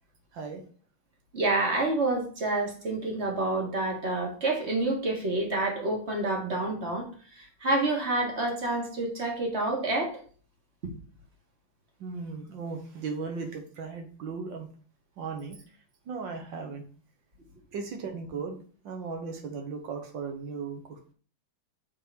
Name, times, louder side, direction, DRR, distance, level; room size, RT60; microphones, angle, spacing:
voice 1, 1.3-7.0 7.4-10.2, right 2 dB, 35° right, 0 dB, 1.6 m, -28 dB
voice 2, 12.0-14.7 15.2-15.6 16.1-16.8 17.7-18.6 18.8-21.1, right 5 dB, 75° right, 4 dB, 1.8 m, -37 dB
6.6 x 3.8 x 4.7 m, 0.43 s
omnidirectional pair, 2.1 m